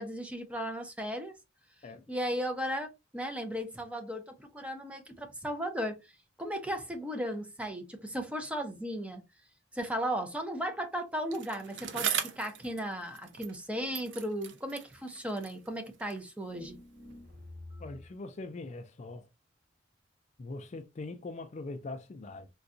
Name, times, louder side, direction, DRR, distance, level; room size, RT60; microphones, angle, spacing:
voice 1, 0.0-1.3 2.1-6.0 6.4-9.2 9.7-16.8, equal, 5° right, 0.6 m, -36 dB
Bicycle, 11.3-13.7 13.9-16.3 17.1-17.2, right 8 dB, 75° right, 0.5 m, -39 dB
sound 1, 16.4-18.2, left 2 dB, 50° right, 2.1 m, -49 dB
voice 2, 17.8-19.3 20.4-22.5, left 2 dB, 40° left, 0.4 m, -42 dB
3.7 x 2.3 x 2.5 m
head